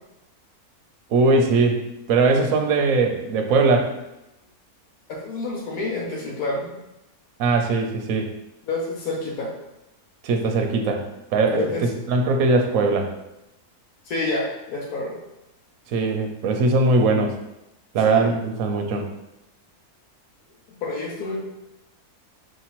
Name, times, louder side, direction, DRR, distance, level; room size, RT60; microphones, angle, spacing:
voice 1, 1.1-3.9 7.4-8.3 10.2-11.7 12.1-13.1 15.9-17.3 17.9-19.1, right 3 dB, 70° right, 3 dB, 0.9 m, -20 dB
voice 2, 5.2-6.8 8.6-9.5 11.5-11.8 14.1-15.2 18.0-18.3 20.8-21.4, left 3 dB, 80° left, -2 dB, 1.3 m, -28 dB
4.8 x 2.8 x 2.9 m, 0.91 s
omnidirectional pair, 1.6 m